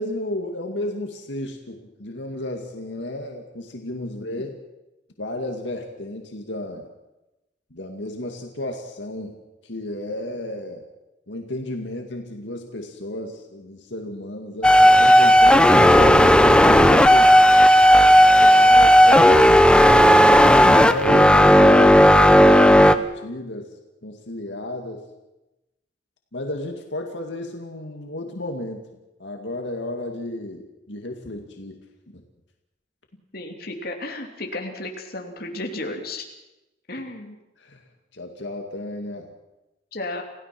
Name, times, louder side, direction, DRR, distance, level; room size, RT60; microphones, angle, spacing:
voice 1, 0.0-4.6 5.2-6.9 7.7-9.3 9.6-10.8 11.3-17.5 18.3-19.6 20.3-22.0 22.3-23.7 24.0-25.0 26.3-28.8 29.2-31.8 32.1-32.2 37.6-37.8 38.1-39.3, left 1 dB, 80° left, 3 dB, 2.2 m, -32 dB
sound 1, 14.6-23.0, equal, 5° left, 0.7 m, -12 dB
voice 2, 33.3-36.2 36.9-37.4 39.9-40.2, left 2 dB, 55° left, 2 dB, 2.9 m, -34 dB
28.5 x 16.5 x 6.1 m, 0.99 s
head